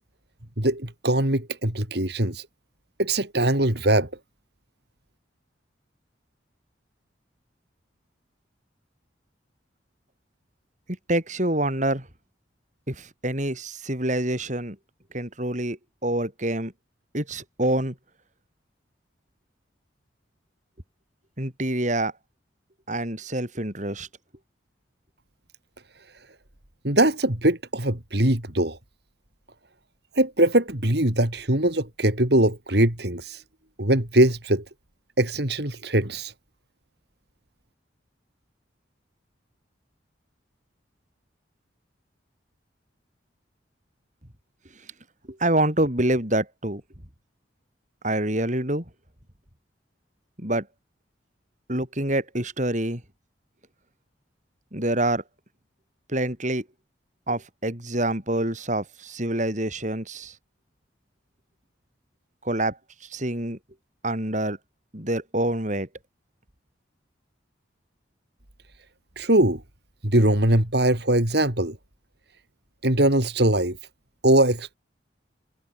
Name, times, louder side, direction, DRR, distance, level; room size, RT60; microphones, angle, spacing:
voice 1, 0.6-2.5 3.0-4.1 26.8-28.8 30.2-33.4 33.8-34.6 35.2-36.3 69.2-69.6 70.0-71.8 72.8-73.8 74.2-74.8, right 1 dB, 60° right, 3.9 m, -21 dB
voice 2, 11.1-12.1 12.9-14.8 15.1-16.7 17.1-17.9 21.4-22.1 22.9-24.1 45.3-46.8 48.0-48.8 50.4-50.7 51.7-53.0 54.7-55.2 56.1-56.6 57.3-60.3 62.4-62.8 63.1-63.6 64.0-64.6 64.9-65.9, right 1 dB, 40° right, 6.0 m, -26 dB
head